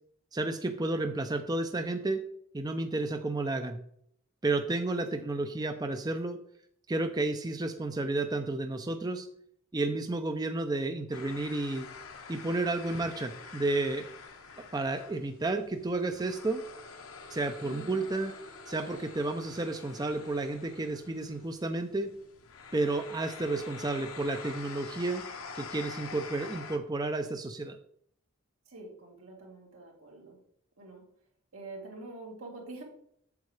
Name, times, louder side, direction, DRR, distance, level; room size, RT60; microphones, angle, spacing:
voice 1, 0.3-2.2 2.5-3.8 4.4-6.4 6.9-9.3 9.7-11.9 12.3-14.1 14.7-16.6 17.3-18.3 18.7-22.1 22.7-25.2 25.5-27.8, right 2 dB, 20° right, 7 dB, 0.4 m, -31 dB
sound 1, 11.1-26.8, left 5 dB, 85° left, 1.1 m, -46 dB
voice 2, 17.6-18.0 28.7-30.4 30.8-31.0 31.5-32.8, right 2 dB, 85° right, -2 dB, 2.8 m, -46 dB
8.2 x 7.3 x 3.2 m, 0.67 s
head